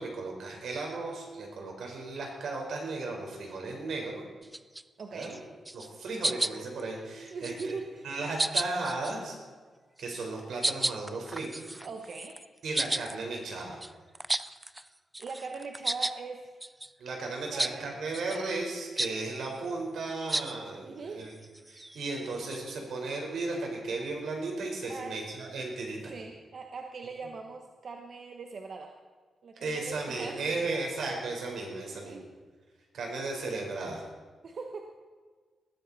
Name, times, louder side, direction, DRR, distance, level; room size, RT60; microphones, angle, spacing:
voice 1, 0.0-4.2 5.1-5.4 5.7-7.7 8.0-9.4 10.0-11.6 12.6-13.8 17.0-21.3 21.7-26.1 29.6-32.1 32.9-34.0, right 3 dB, 80° right, 1 dB, 4.3 m, -35 dB
sound 1, 4.4-4.8 5.2-5.4 5.6-6.0 6.2-6.8 7.3-7.8 8.4-9.2 10.0-10.2 10.6-14.9 15.1-16.2 16.6-16.9 17.6-17.8 18.1-18.4 19.0-19.1 20.3-20.5 21.2-22.8, right 1 dB, 10° right, 0.3 m, -33 dB
voice 2, 5.0-5.4 7.3-8.1 11.8-12.4 15.2-16.6 17.5-18.0 20.8-21.3 24.9-25.2 26.1-28.9 29.4-30.6 31.9-32.3 34.4-34.9, right 4 dB, 45° right, 3 dB, 1.1 m, -41 dB
20.0 x 14.0 x 4.1 m, 1.5 s
wide cardioid pair, 175°, 0 cm